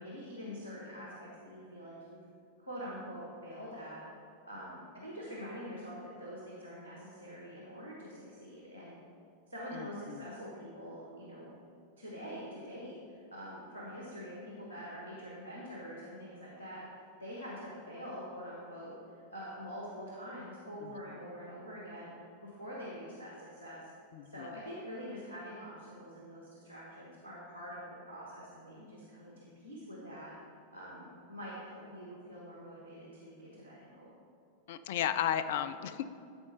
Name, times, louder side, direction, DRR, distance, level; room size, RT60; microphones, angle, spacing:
voice 1, 0.0-2.2 2.6-4.0 4.5-8.9 9.5-11.5 12.0-16.8 17.2-19.0 19.3-22.1 22.4-23.8 24.2-30.3 30.7-34.1, equal, 85° left, -4 dB, 1.3 m, -45 dB
voice 2, 9.7-10.3 20.8-20.9 24.1-24.5 34.7-36.1, left 10 dB, 55° left, 12 dB, 0.4 m, -34 dB
12.0 x 4.3 x 4.3 m, 2.5 s
figure-of-eight pair, 90°, 0 cm